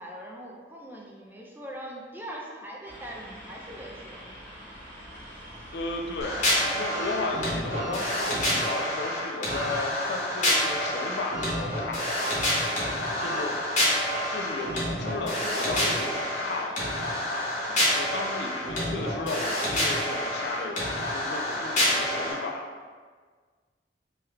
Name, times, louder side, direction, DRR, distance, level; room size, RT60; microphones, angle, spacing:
voice 1, 0.0-4.3 12.7-13.5 17.7-17.9, equal, 10° right, -2 dB, 0.4 m, -42 dB
sound 1, 2.8-8.5, equal, 5° left, 0.9 m, -45 dB
voice 2, 5.7-12.2 13.2-13.6 14.3-16.8 18.0-22.6, left 2 dB, 65° left, 2 dB, 0.4 m, -34 dB
sound 2, 6.2-22.3, left 1 dB, 45° left, 1.1 m, -28 dB
sound 3, 6.9-15.2 15.7-15.8 17.0-17.1, right 1 dB, 40° right, 0.7 m, -40 dB
3.1 x 2.3 x 3.3 m, 1.5 s
head